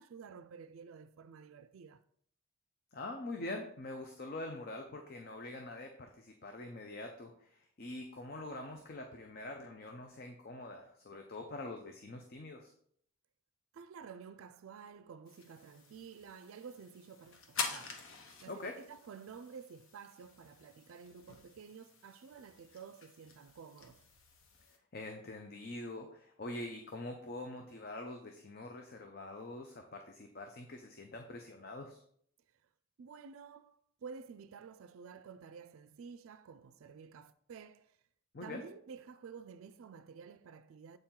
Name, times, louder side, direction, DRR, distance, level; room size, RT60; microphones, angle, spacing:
voice 1, 0.0-2.0 13.7-18.1 18.4-24.0 33.0-38.0 38.4-41.0, right 6 dB, 70° right, 0.4 m, -51 dB
voice 2, 2.9-12.7 18.5-18.8 24.9-32.0 38.3-38.6, left 2 dB, 45° left, 0.6 m, -44 dB
sound 1, 15.3-24.8, left 4 dB, 65° left, 1.0 m, -47 dB
7.8 x 4.4 x 3.7 m
head